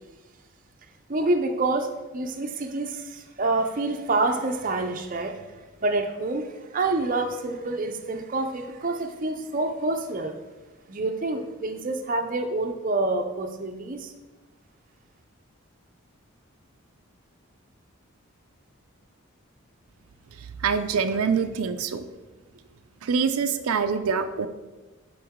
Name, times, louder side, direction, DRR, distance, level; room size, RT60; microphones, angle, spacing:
voice 1, 1.1-5.5 5.8-10.4 10.9-14.1, right 2 dB, 40° right, 5 dB, 0.5 m, -27 dB
voice 2, 20.4-22.0 23.0-24.5, right 6 dB, 90° right, 8 dB, 0.5 m, -25 dB
10.0 x 3.9 x 3.6 m, 1.2 s
head